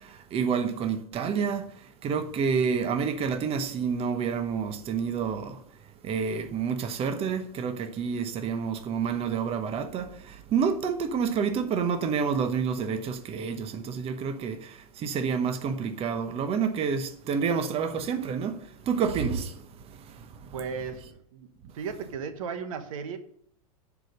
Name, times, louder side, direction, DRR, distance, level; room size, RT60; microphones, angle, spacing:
voice 1, 0.3-1.6 2.0-5.5 6.1-10.1 10.5-14.5 15.0-18.5 18.9-19.5, right 6 dB, 30° right, 1.1 m, -28 dB
voice 2, 20.5-21.5 21.7-23.2, right 6 dB, 65° right, 1.2 m, -35 dB
10.5 x 4.9 x 6.7 m
hypercardioid pair, 100°, 19 cm